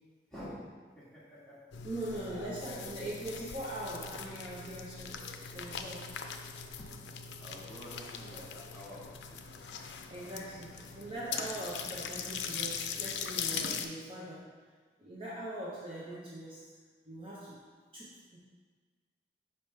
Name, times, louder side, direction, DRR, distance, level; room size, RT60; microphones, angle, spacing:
voice 1, 1.0-1.6 2.0-2.9 5.1-5.3 6.8-6.9 7.4-9.5 10.2-10.8, equal, 5° left, -10 dB, 1.6 m, -50 dB
sound 1, 1.7-13.9, left 6 dB, 85° left, 0.4 m, -41 dB
voice 2, 1.8-5.1 5.5-6.0 10.1-14.4 15.0-16.6 17.1-17.6 17.9-18.4, right 1 dB, 30° right, -7 dB, 0.9 m, -41 dB
5.8 x 5.0 x 3.3 m, 1.5 s
head